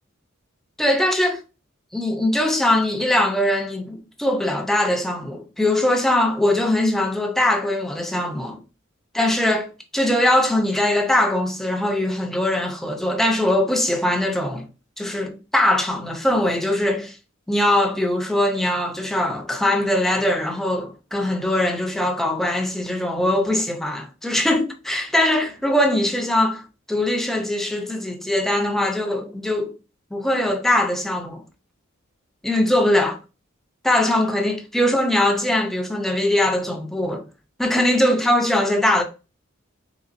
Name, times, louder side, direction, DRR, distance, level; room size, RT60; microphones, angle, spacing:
voice 1, 0.8-1.4 1.9-8.6 9.1-9.7 9.9-14.6 15.0-17.2 17.5-26.6 26.9-29.7 30.1-31.4 32.4-33.2 33.8-37.3 37.6-39.0, left 1 dB, ahead, 0.5 m, -21 dB
3.9 x 3.4 x 2.5 m
head